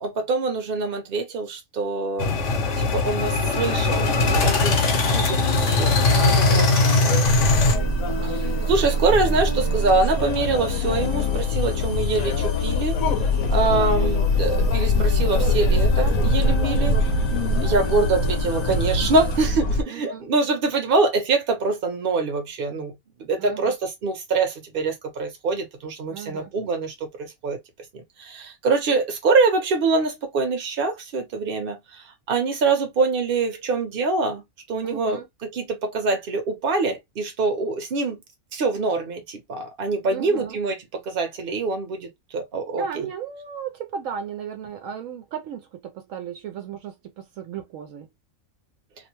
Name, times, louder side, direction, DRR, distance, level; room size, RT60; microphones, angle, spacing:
voice 1, 0.0-7.1 8.2-13.0 13.5-17.0 17.6-22.9 23.2-27.6 27.9-38.2 38.5-43.1, right 3 dB, 45° right, 0.9 m, -25 dB
sound 1, 2.2-7.8, left 3 dB, 65° left, 1.1 m, -20 dB
sound 2, 3.2-19.4, left 3 dB, 35° left, 0.4 m, -32 dB
voice 2, 6.1-6.8 7.1-8.5 19.9-20.3 23.4-23.7 26.1-26.5 34.8-35.3 40.1-40.6 42.8-48.1, right 6 dB, 75° right, 0.9 m, -35 dB
sound 3, 7.2-19.8, left 1 dB, 90° left, 1.0 m, -23 dB
2.7 x 2.1 x 2.9 m
omnidirectional pair, 1.4 m